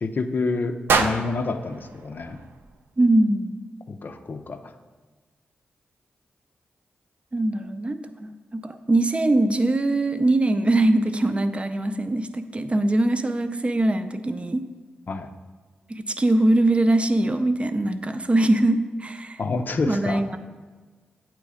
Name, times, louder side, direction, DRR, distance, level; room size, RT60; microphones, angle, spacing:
voice 1, 0.0-2.4 3.9-4.7 15.1-15.3 19.4-20.2, left 3 dB, 55° left, 7 dB, 0.5 m, -28 dB
sound 1, 0.9-3.0, right 4 dB, 75° right, 0.4 m, -27 dB
voice 2, 3.0-3.6 7.3-14.6 15.9-19.4 19.9-20.4, right 2 dB, 30° right, 9 dB, 0.5 m, -22 dB
8.3 x 3.1 x 4.9 m, 1.4 s
supercardioid pair, 45°, 4 cm